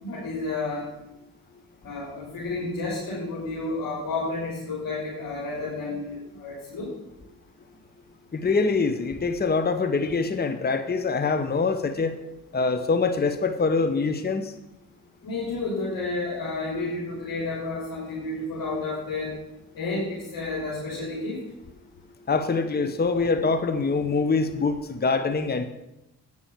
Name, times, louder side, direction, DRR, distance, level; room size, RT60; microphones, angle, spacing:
voice 1, 0.0-0.9 1.8-6.9 15.2-19.3 19.7-21.4, left 3 dB, 70° left, -6 dB, 3.4 m, -31 dB
voice 2, 8.3-12.2 12.5-14.5 22.3-25.6, left 4 dB, 25° left, 9 dB, 0.9 m, -24 dB
9.0 x 6.2 x 7.1 m, 0.92 s
supercardioid pair, 50°, 35 cm